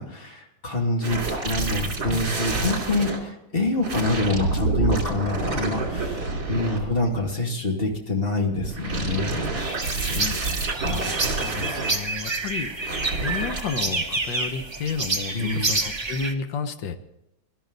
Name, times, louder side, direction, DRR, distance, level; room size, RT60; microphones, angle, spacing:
voice 1, 0.0-9.6 15.3-15.7, left 2 dB, 30° left, 1 dB, 2.6 m, -26 dB
sound 1, 1.0-3.2 3.8-7.2 8.5-11.9 12.8-13.6, right 3 dB, 60° right, 3.3 m, -28 dB
sound 2, 9.6-16.3, right 3 dB, 20° right, 0.8 m, -29 dB
voice 2, 10.8-17.0, left 6 dB, 85° left, 8 dB, 1.7 m, -32 dB
20.5 x 12.5 x 4.0 m, 0.88 s
omnidirectional pair, 1.9 m